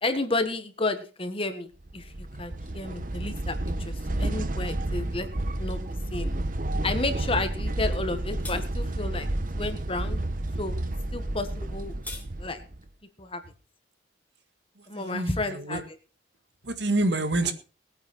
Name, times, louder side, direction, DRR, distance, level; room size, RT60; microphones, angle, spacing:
voice 1, 0.0-1.7 1.9-3.5 3.8-5.3 5.6-5.8 6.1-6.3 6.8-9.3 9.6-10.2 10.6-10.8 11.1-11.9 12.4-12.6 13.2-13.4 14.9-15.8, left 2 dB, 30° left, 9 dB, 1.6 m, -31 dB
sound 1, 1.9-12.9, right 1 dB, 45° right, 1.0 m, -31 dB
sound 2, 7.9-8.1 8.4-8.6 11.6-12.3, left 2 dB, 10° left, 1.8 m, -40 dB
voice 2, 14.9-15.8 16.6-17.5, right 2 dB, 65° right, 9 dB, 1.8 m, -27 dB
20.0 x 9.4 x 4.4 m, 0.35 s
head